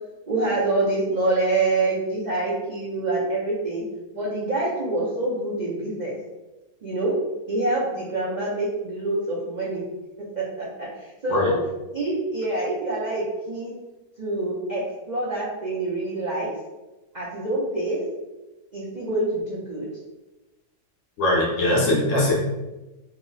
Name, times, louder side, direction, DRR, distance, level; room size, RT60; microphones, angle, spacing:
voice 1, 0.3-3.8 4.1-6.1 6.8-7.1 7.5-9.8 10.4-10.9 11.2-11.6 11.9-13.7 14.2-16.5 17.1-18.0 18.7-19.9, right 2 dB, 60° right, -7 dB, 0.4 m, -26 dB
voice 2, 21.2-22.3, left 1 dB, 60° left, -3 dB, 0.9 m, -21 dB
2.9 x 2.0 x 3.8 m, 1.1 s
omnidirectional pair, 1.6 m